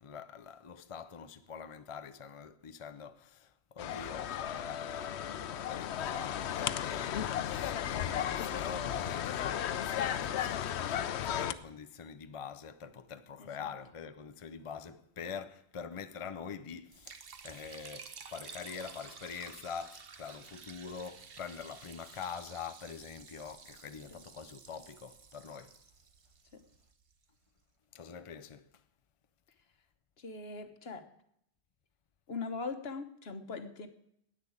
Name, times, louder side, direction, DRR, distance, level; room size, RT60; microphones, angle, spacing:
voice 1, 0.0-17.2 17.4-25.8 27.9-28.8, left 6 dB, 35° left, 0.6 m, -44 dB
sound 1, 3.8-11.5, left 10 dB, 85° left, 0.9 m, -35 dB
voice 2, 13.4-13.7 24.1-24.2 26.5-26.6 30.2-31.1 32.3-33.9, left 4 dB, 70° left, 1.4 m, -41 dB
Liquid, 16.9-27.1, right 6 dB, 65° right, 1.2 m, -52 dB
10.5 x 9.0 x 8.5 m
omnidirectional pair, 1.1 m